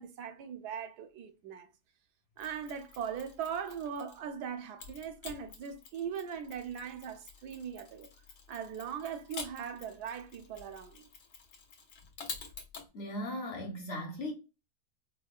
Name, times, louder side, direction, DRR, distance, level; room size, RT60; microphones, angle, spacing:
voice 1, 0.0-1.7 2.4-8.1 8.5-11.1, right 7 dB, 80° right, 1.1 m, -40 dB
Mechanisms, 2.4-4.3 4.8-12.9, left 5 dB, 90° left, 1.4 m, -49 dB
voice 2, 12.9-14.3, left 1 dB, 55° left, 0.7 m, -37 dB
4.6 x 2.1 x 2.3 m
omnidirectional pair, 1.7 m